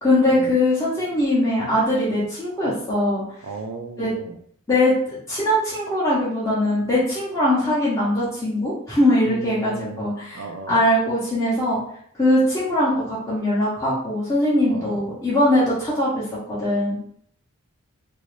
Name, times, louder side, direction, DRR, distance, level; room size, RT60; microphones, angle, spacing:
voice 1, 0.0-3.2 4.0-4.1 4.7-5.0 5.3-10.4 10.7-11.8 12.2-17.0, left 1 dB, 15° left, 0.9 m, -21 dB
voice 2, 3.4-4.4 9.2-10.8 14.7-15.1, right 4 dB, 60° right, 0.4 m, -36 dB
2.9 x 2.7 x 3.1 m
head